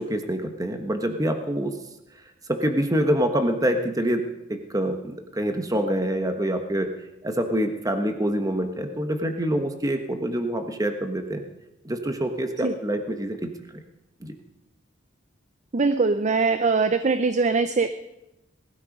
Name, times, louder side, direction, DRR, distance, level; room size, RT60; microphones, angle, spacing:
voice 1, 0.0-1.7 2.5-6.9 7.2-11.4 11.8-13.5 14.2-14.4, right 1 dB, 20° right, 6 dB, 1.3 m, -26 dB
voice 2, 15.7-17.9, right 4 dB, 40° right, 10 dB, 0.6 m, -22 dB
19.0 x 13.0 x 5.3 m, 0.93 s
head